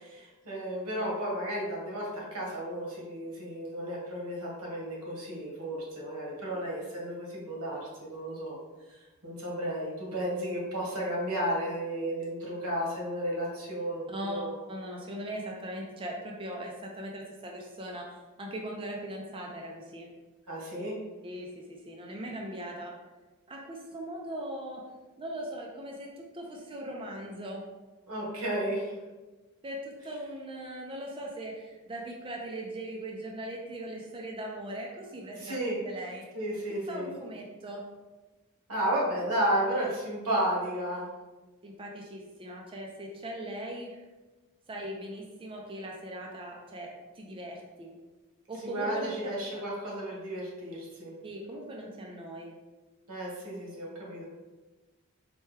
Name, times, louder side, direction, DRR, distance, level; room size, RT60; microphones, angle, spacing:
voice 1, 0.0-8.6 8.9-14.5 20.5-21.0 28.1-28.9 35.4-35.8 36.3-37.1 38.7-41.1 48.6-51.1 53.1-54.2, right 1 dB, 90° right, -4 dB, 1.2 m, -33 dB
voice 2, 14.1-14.4 14.7-20.1 21.2-22.9 23.5-24.8 25.2-27.6 29.6-35.6 35.8-36.2 36.8-37.8 41.6-44.0 44.7-46.9 47.2-47.9 48.5-49.1 51.2-52.5, right 1 dB, 25° right, 0 dB, 0.4 m, -39 dB
4.4 x 2.2 x 3.2 m, 1.2 s
head